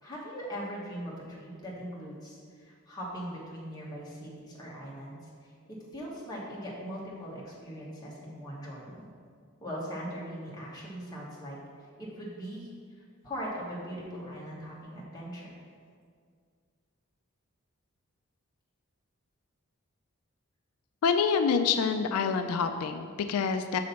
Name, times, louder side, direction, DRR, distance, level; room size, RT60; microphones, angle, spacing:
voice 1, 0.0-9.1 9.6-11.6 12.0-12.7 13.2-15.6, equal, 20° left, -6 dB, 1.4 m, -40 dB
voice 2, 21.0-23.8, left 6 dB, 85° left, 7 dB, 0.4 m, -27 dB
6.3 x 4.1 x 5.8 m, 2.1 s
head